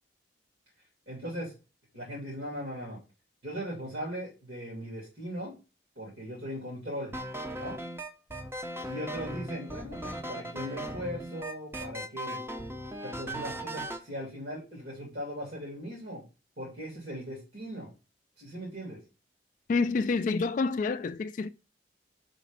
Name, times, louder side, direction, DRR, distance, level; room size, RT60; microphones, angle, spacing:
voice 1, 1.1-1.5 1.9-3.0 3.4-5.5 5.9-7.1 7.5-7.8 8.8-12.4 13.0-16.2 16.6-17.9 18.4-19.0, equal, 65° right, 3.1 m, -39 dB
sound 1, 7.1-14.0, right 1 dB, 15° right, 0.6 m, -38 dB
voice 2, 19.7-21.5, left 4 dB, 45° left, 0.3 m, -28 dB
5.1 x 5.1 x 5.4 m
head